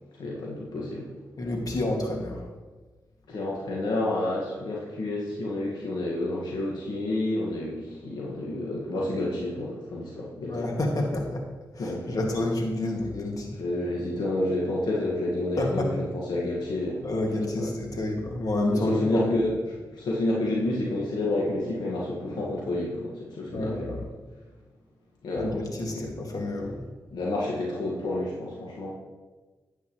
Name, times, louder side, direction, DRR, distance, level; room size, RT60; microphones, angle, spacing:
voice 1, 0.2-1.1 3.3-10.7 11.8-12.3 13.5-17.2 17.5-17.7 18.7-19.5 19.9-24.0 25.2-26.0 27.1-28.9, left 1 dB, 80° left, -3 dB, 1.5 m, -29 dB
voice 2, 1.4-2.5 10.4-11.4 11.8-13.5 15.6-15.9 17.0-19.3 23.5-24.0 25.4-26.8, left 1 dB, 55° left, 1 dB, 1.9 m, -29 dB
10.5 x 8.2 x 3.0 m, 1.3 s
cardioid pair, 50°, 7 cm